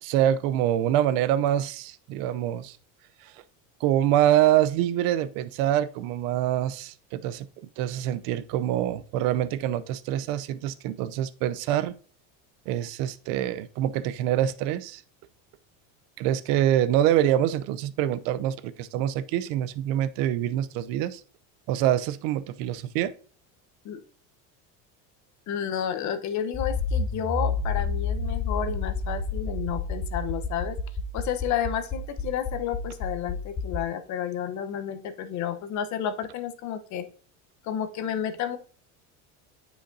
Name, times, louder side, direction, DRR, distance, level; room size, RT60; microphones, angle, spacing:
voice 1, 0.0-2.8 3.2-3.3 3.8-7.5 7.8-11.9 12.7-15.0 16.2-21.2 21.7-23.1, right 12 dB, 70° right, 0.7 m, -25 dB
voice 2, 25.5-30.8 31.1-37.1 37.6-38.6, left 9 dB, 50° left, 1.0 m, -31 dB
Accelerating revving vroom, 26.5-33.8, left 3 dB, 30° left, 3.3 m, -30 dB
8.9 x 5.1 x 2.7 m
cardioid pair, 130°, 37 cm